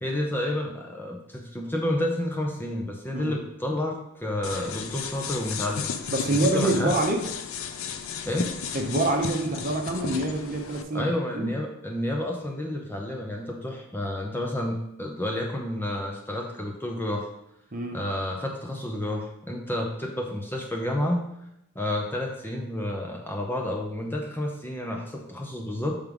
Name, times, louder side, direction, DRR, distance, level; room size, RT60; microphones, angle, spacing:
voice 1, 0.0-5.9 6.4-6.9 8.2-8.6 10.9-17.3 17.9-21.3 21.7-26.0, left 1 dB, 10° left, 0 dB, 0.6 m, -30 dB
sound 1, 4.4-10.8, left 6 dB, 70° left, 0.5 m, -34 dB
voice 2, 6.1-7.2 8.7-11.1 11.3-11.5 17.7-18.0, right 2 dB, 40° right, 2 dB, 0.8 m, -26 dB
6.2 x 3.6 x 5.2 m, 0.81 s
head